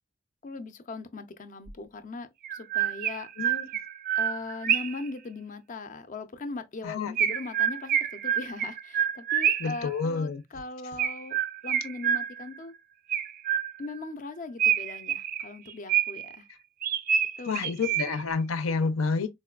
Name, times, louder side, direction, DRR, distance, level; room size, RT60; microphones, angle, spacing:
voice 1, 0.4-3.3 4.2-12.7 13.8-16.5 17.4-17.8, left 3 dB, 40° left, 0.4 m, -39 dB
Chirp tweet, 1.7-1.8 2.4-5.1 7.2-9.8 11.0-12.6 13.1-14.0 14.6-16.4 16.8-18.3, right 9 dB, 45° right, 0.4 m, -28 dB
voice 2, 3.4-3.7 6.8-7.1 9.6-10.4 17.5-19.3, left 4 dB, 85° left, 0.6 m, -29 dB
4.1 x 2.2 x 2.3 m
head